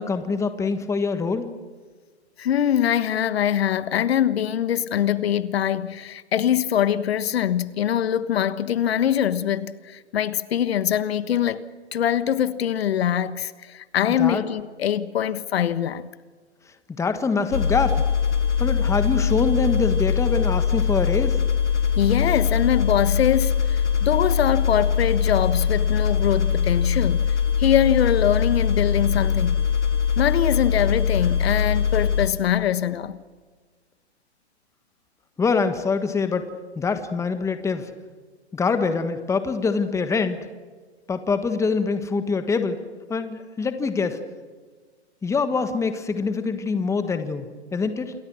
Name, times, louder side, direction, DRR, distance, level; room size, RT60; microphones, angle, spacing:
voice 1, 0.0-1.4 14.2-14.4 16.9-18.0 18.6-21.4 35.4-36.5 36.7-37.9 38.5-40.4 41.1-42.8 43.1-44.2 45.2-48.1, left 4 dB, 10° left, 1.4 m, -24 dB
voice 2, 2.4-11.7 11.9-16.1 22.0-27.3 27.6-29.6 30.2-33.2, left 10 dB, 65° left, 1.3 m, -23 dB
sound 1, 17.5-32.3, left 7 dB, 85° left, 3.3 m, -22 dB
28.0 x 22.0 x 6.3 m
hypercardioid pair, 130°, 34 cm